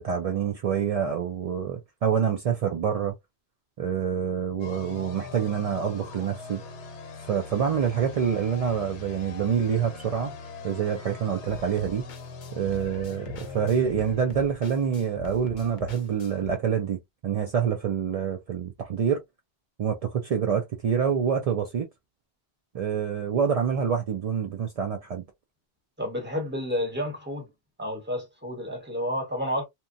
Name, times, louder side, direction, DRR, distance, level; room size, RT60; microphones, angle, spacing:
voice 1, 0.0-3.1 3.8-6.6 7.2-10.3 10.6-12.1 12.5-19.2 19.8-21.9 22.7-25.2, right 7 dB, 55° right, 0.4 m, -26 dB
sound 1, 4.6-15.2, left 4 dB, 85° left, 1.0 m, -42 dB
sound 2, 11.5-16.5, left 4 dB, 50° left, 0.7 m, -43 dB
voice 2, 26.0-27.5 27.8-29.6, equal, 10° right, 0.9 m, -30 dB
2.9 x 2.2 x 2.5 m
omnidirectional pair, 1.1 m